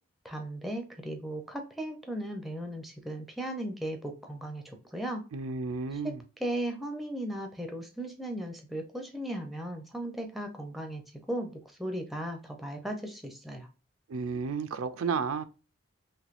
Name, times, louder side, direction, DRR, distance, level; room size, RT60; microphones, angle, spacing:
voice 1, 0.2-5.2 5.9-6.1 6.4-11.0 11.3-13.7, right 1 dB, ahead, 0.5 m, -36 dB
voice 2, 5.3-6.2 14.1-15.5, right 5 dB, 85° right, 0.4 m, -32 dB
3.2 x 3.0 x 2.5 m
head